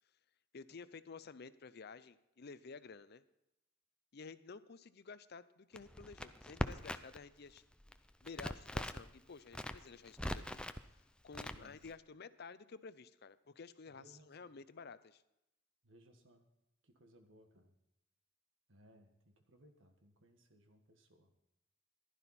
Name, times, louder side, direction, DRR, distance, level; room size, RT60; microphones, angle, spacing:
voice 1, 0.5-3.2 4.1-7.6 8.2-10.6 11.2-15.2, left 5 dB, 55° left, 15 dB, 0.6 m, -52 dB
Crackle, 5.8-7.2 7.5-9.1 9.5-10.8 11.3-11.9, left 1 dB, 5° left, 0.5 m, -41 dB
voice 2, 13.9-14.5 15.8-16.4 16.8-17.7 18.7-21.3, right 1 dB, 80° right, 5 dB, 1.6 m, -64 dB
15.0 x 12.0 x 4.3 m, 0.88 s
head